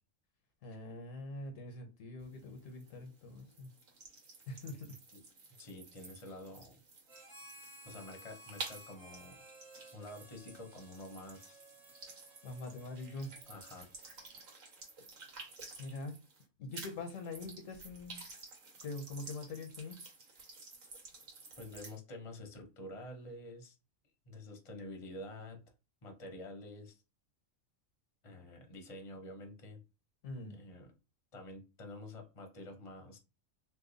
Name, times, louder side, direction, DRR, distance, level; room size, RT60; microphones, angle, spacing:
voice 1, 0.6-3.7 4.5-5.0 12.4-13.3 15.8-16.2 16.6-18.2 18.8-20.0 30.2-30.5, left 2 dB, 75° left, 1.1 m, -44 dB
sound 1, 2.2-16.4 16.7-22.0, right 3 dB, 80° right, 1.5 m, -52 dB
voice 2, 5.6-6.8 7.8-9.4 9.9-11.6 13.5-13.9 21.6-23.8 24.3-25.6 26.0-27.0 28.2-29.8 30.5-30.9 31.3-33.2, left 1 dB, 30° left, 0.8 m, -48 dB
Harmonica, 7.1-14.8, right 1 dB, 35° right, 1.5 m, -57 dB
3.0 x 2.2 x 3.9 m
omnidirectional pair, 1.4 m